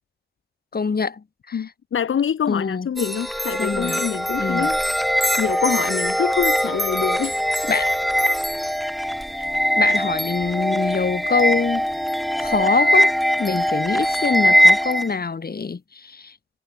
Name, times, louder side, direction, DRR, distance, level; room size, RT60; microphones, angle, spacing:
voice 1, 0.7-1.7 2.5-2.9 3.6-4.0 4.4-4.7 7.7-7.9 9.8-11.9 12.4-16.3, left 5 dB, 45° left, 7.0 m, -24 dB
voice 2, 1.5-4.8 5.4-7.5 9.4-9.5, left 8 dB, 75° left, 1.8 m, -25 dB
sound 1, 3.0-15.1, equal, ahead, 2.4 m, -21 dB
wide cardioid pair, 95°, 21 cm